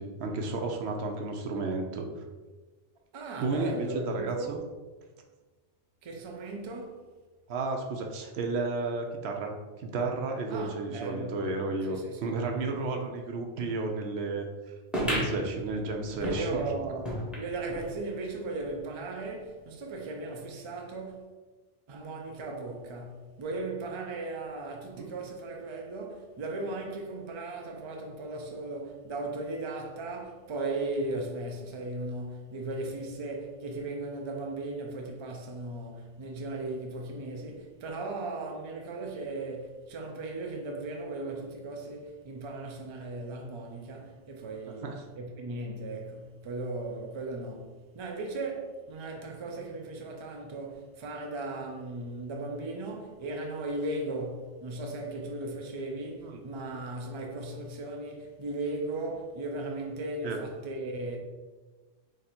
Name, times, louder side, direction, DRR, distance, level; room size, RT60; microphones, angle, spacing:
voice 1, 0.0-2.1 3.4-4.6 7.5-9.5 9.8-14.5 15.0-16.6 25.0-25.1 44.8-44.9 56.2-56.4 60.2-60.4, right 3 dB, 75° right, 0.8 m, -32 dB
voice 2, 3.1-4.5 6.0-7.0 10.5-11.4 11.9-12.3 16.2-17.1 17.3-21.3 21.9-61.2, right 2 dB, 45° right, 0.4 m, -37 dB
sound 1, 14.9-17.9 18.3-18.4 18.6-18.7 19.5-19.6, equal, ahead, 0.7 m, -34 dB
3.1 x 2.6 x 4.2 m
omnidirectional pair, 1.2 m